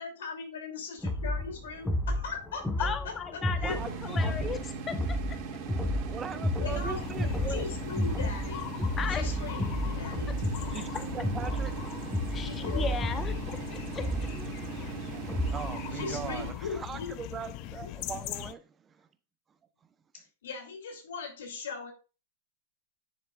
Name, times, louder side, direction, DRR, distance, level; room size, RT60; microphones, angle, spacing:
voice 1, 0.0-3.9 6.6-8.8 9.1-10.4 10.7-10.9 12.4-12.8 15.9-17.1 20.1-21.9, left 5 dB, 75° left, 3.2 m, -39 dB
sound 1, 1.0-15.8, equal, 5° left, 1.4 m, -32 dB
voice 2, 2.8-4.6 4.9-5.2 9.0-9.2 10.3-10.4 12.3-14.3, left 6 dB, 20° left, 0.9 m, -36 dB
voice 3, 3.6-4.6 6.1-7.6 10.7-11.8 15.5-19.1 19.5-19.6, right 6 dB, 20° right, 0.9 m, -40 dB
sound 2, 3.7-16.5, right 6 dB, 45° right, 2.4 m, -39 dB
Birds in Mauritius, 6.7-18.5, left 15 dB, 45° left, 0.5 m, -40 dB
10.5 x 6.7 x 2.5 m
hypercardioid pair, 115°, 0 cm